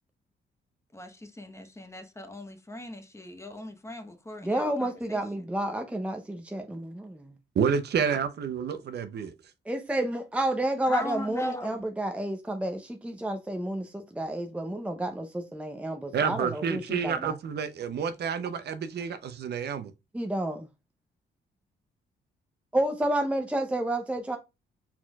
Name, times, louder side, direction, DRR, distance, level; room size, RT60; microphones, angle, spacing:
voice 1, 0.9-5.2 10.9-11.8, left 1 dB, 15° left, 0.9 m, -39 dB
voice 2, 4.4-7.3 9.7-17.3 20.1-20.7 22.7-24.4, right 1 dB, 5° right, 0.6 m, -30 dB
voice 3, 7.6-9.3 16.1-19.9, right 7 dB, 55° right, 0.7 m, -29 dB
4.3 x 4.2 x 2.3 m
cardioid pair, 90°, 20 cm